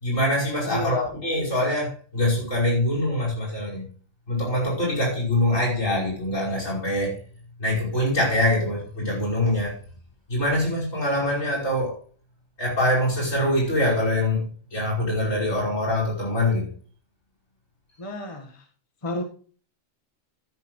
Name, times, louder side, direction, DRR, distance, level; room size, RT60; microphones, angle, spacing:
voice 1, 0.0-3.9 4.3-7.2 7.6-9.8 10.3-12.0 12.6-16.7, left 1 dB, 75° left, -3 dB, 5.9 m, -24 dB
voice 2, 0.6-1.1 18.0-18.6 19.0-19.2, left 2 dB, 25° left, 2 dB, 1.6 m, -31 dB
13.0 x 11.0 x 3.2 m, 0.42 s
omnidirectional pair, 1.4 m